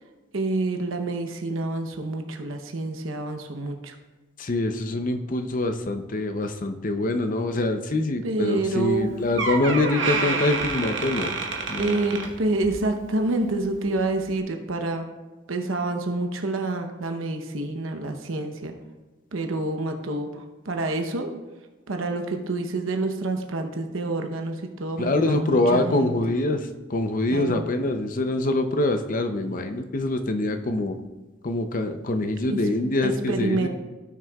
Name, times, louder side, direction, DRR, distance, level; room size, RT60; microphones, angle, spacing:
voice 1, 0.3-4.0 8.2-9.4 11.8-15.0 15.5-18.7 19.3-21.3 21.9-26.1 27.3-27.6 32.5-32.6 33.0-33.7, right 2 dB, 85° right, 5 dB, 0.9 m, -28 dB
voice 2, 4.4-11.4 11.7-12.1 25.0-31.0 31.4-33.7, left 2 dB, 40° left, 7 dB, 0.6 m, -25 dB
Door, 8.9-9.0 9.4-12.9 13.2-13.5 14.2-14.3, right 4 dB, 65° right, 1.2 m, -28 dB
16.5 x 6.3 x 2.3 m, 1.2 s
head